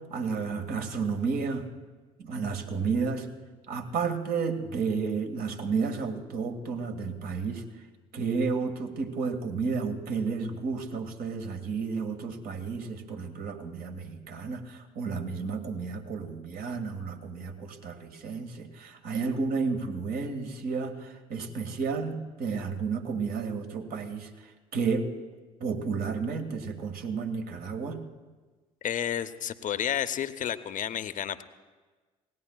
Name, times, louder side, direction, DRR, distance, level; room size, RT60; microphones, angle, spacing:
voice 1, 0.0-1.7 2.2-3.3 3.7-7.6 8.1-25.1 25.6-28.0, right 5 dB, 55° right, 5 dB, 1.6 m, -32 dB
voice 2, 28.8-31.4, left 9 dB, 45° left, 11 dB, 0.7 m, -31 dB
26.0 x 18.5 x 2.3 m, 1.3 s
hypercardioid pair, 50°, 18 cm